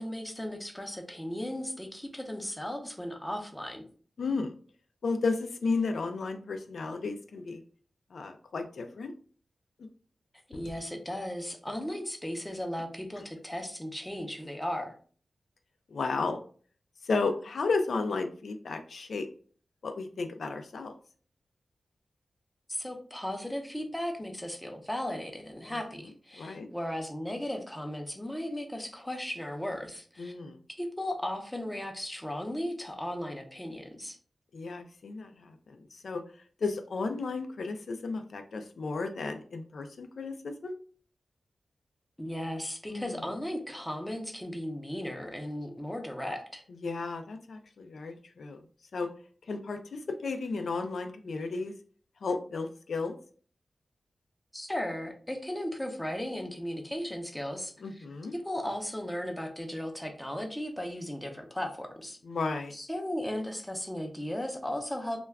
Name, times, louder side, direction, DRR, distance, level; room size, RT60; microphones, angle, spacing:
voice 1, 0.0-3.8 10.5-14.9 22.7-30.3 30.8-34.2 42.2-46.6 54.5-58.1 58.3-62.2 62.7-65.2, left 1 dB, 5° left, 4 dB, 0.5 m, -36 dB
voice 2, 4.2-4.5 5.0-7.6 8.1-9.1 10.5-10.6 15.9-16.4 17.0-19.3 19.8-20.9 26.4-26.7 30.2-30.6 34.5-35.8 36.0-36.2 36.6-40.7 42.9-43.2 46.8-48.6 48.9-49.1 49.5-51.7 52.2-53.1 57.8-58.3 62.2-62.7, left 4 dB, 80° left, 6 dB, 0.3 m, -33 dB
2.2 x 2.2 x 3.3 m, 0.43 s
wide cardioid pair, 105°, 0 cm